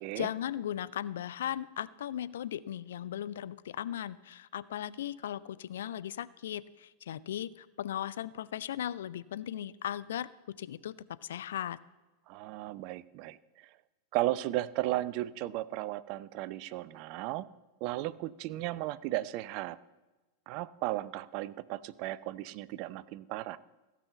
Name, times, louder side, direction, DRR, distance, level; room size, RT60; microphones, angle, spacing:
voice 1, 0.2-10.3 10.6-10.9 11.2-11.8, left 11 dB, 60° left, 16 dB, 0.4 m, -37 dB
voice 2, 12.3-13.7 14.1-17.5 17.8-19.8 20.5-23.6, right 16 dB, 45° right, 17 dB, 0.4 m, -35 dB
15.5 x 6.1 x 6.8 m, 1.2 s
figure-of-eight pair, 90°, 0 cm